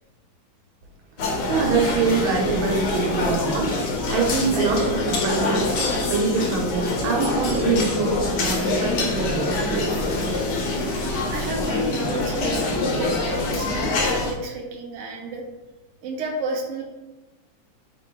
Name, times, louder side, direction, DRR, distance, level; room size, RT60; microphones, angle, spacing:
sound 1, 1.2-14.3, left 2 dB, 65° left, 1.3 m, -25 dB
voice 1, 1.5-3.8 4.1-9.9, right 4 dB, 85° right, -1 dB, 1.6 m, -24 dB
voice 2, 11.3-15.4 16.0-16.8, right 1 dB, 60° right, 0 dB, 0.7 m, -31 dB
3.8 x 2.5 x 4.5 m, 1.1 s
omnidirectional pair, 2.2 m